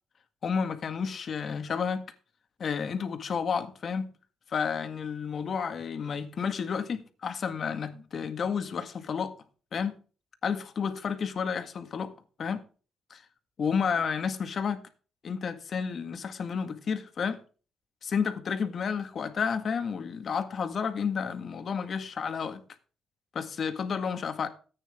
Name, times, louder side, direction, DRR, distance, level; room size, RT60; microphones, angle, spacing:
voice 1, 0.4-2.0 2.6-4.1 4.5-9.3 9.7-9.9 10.4-12.1 12.4-12.6 13.1-13.2 13.6-14.8 15.2-17.4 18.0-22.6 23.3-24.5, left 6 dB, 50° left, 1.7 m, -31 dB
14.0 x 9.0 x 3.6 m
cardioid pair, 90°, 0 cm